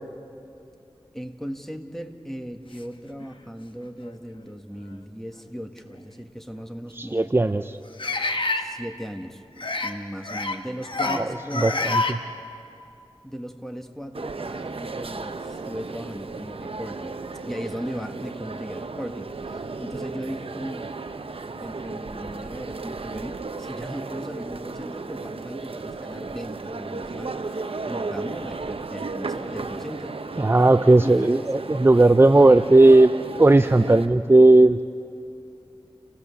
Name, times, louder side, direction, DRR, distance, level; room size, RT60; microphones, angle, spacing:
voice 1, 1.1-7.3 8.6-9.4 9.8-11.9 13.2-17.2 17.5-20.9 21.6-30.1 31.0-31.4, equal, 5° left, 5 dB, 1.7 m, -37 dB
sound 1, 3.2-3.3 4.0-4.2 5.8-5.9 8.0-8.6 9.6-9.9 10.2-10.6 10.8-11.2 11.5-12.1, left 3 dB, 55° left, 1.4 m, -26 dB
voice 2, 6.9-7.8 11.1-12.2 30.4-33.1 33.4-34.8, right 2 dB, 25° right, 10 dB, 0.5 m, -16 dB
sound 2, 14.1-34.1, right 3 dB, 70° right, 0.9 m, -34 dB
29.5 x 16.0 x 7.1 m, 2.7 s
cardioid pair, 40°, 10 cm